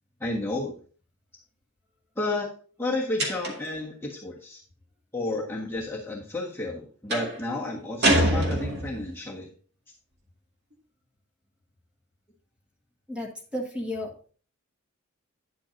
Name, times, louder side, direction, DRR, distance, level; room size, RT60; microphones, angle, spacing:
voice 1, 0.2-0.7 2.2-2.5 2.8-4.6 5.1-9.5, left 2 dB, 10° left, -4 dB, 1.4 m, -31 dB
sound 1, 3.2-3.8 7.1-7.4 8.0-9.1, right 1 dB, 50° right, 2.0 m, -24 dB
voice 2, 13.1-14.3, left 1 dB, 5° right, 0 dB, 1.6 m, -33 dB
10.5 x 8.2 x 2.6 m, 0.42 s
head